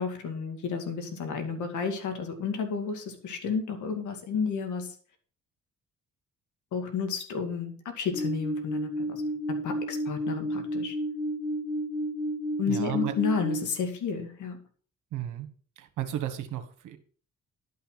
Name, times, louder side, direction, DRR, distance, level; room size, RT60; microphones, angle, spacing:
voice 1, 0.0-4.9 6.7-9.2 9.5-11.0 12.6-14.6, left 5 dB, 75° left, 6 dB, 2.4 m, -31 dB
sound 1, 8.1-13.6, equal, 30° left, 1.7 m, -31 dB
voice 2, 12.7-13.1 15.1-15.5 15.8-17.0, right 11 dB, 85° right, 7 dB, 1.5 m, -34 dB
11.5 x 5.7 x 5.8 m, 0.43 s
cardioid pair, 90°, 30 cm